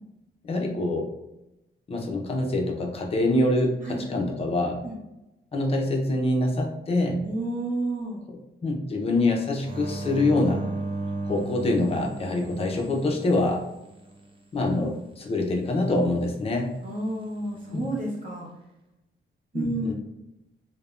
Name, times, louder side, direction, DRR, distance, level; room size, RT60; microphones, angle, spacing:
voice 1, 0.4-1.1 1.9-4.8 5.5-7.2 8.6-10.6 11.3-13.6 14.5-16.8 17.7-17.9 19.5-19.9, left 2 dB, 30° left, 1 dB, 0.5 m, -25 dB
voice 2, 7.2-8.2 14.7-14.8 16.8-18.5 19.5-19.9, right 2 dB, 45° right, -4 dB, 0.8 m, -30 dB
sound 1, 9.6-14.2 17.5-18.1, right 2 dB, 30° right, 0.4 m, -35 dB
3.1 x 2.1 x 2.4 m, 0.93 s
wide cardioid pair, 160°, 19 cm